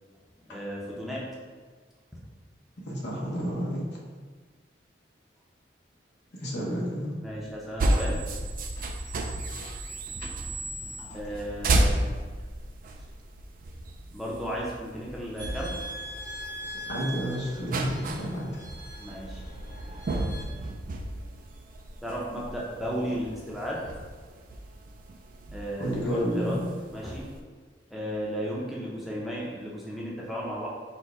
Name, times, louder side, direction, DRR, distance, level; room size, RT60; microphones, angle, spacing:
voice 1, 0.5-1.2 7.2-8.2 11.1-12.1 14.1-15.7 19.0-19.4 22.0-23.8 25.5-26.6 26.9-27.3 27.9-30.7, equal, ahead, -5 dB, 0.6 m, -34 dB
voice 2, 2.9-3.8 6.4-7.1 11.0-11.2 16.9-18.5 25.8-26.6, equal, 65° left, -3 dB, 1.0 m, -30 dB
sound 1, 7.8-27.4, right 1 dB, 50° right, 0.4 m, -33 dB
sound 2, 15.4-20.4, equal, 50° left, 1.2 m, -42 dB
4.3 x 2.2 x 4.6 m, 1.5 s
head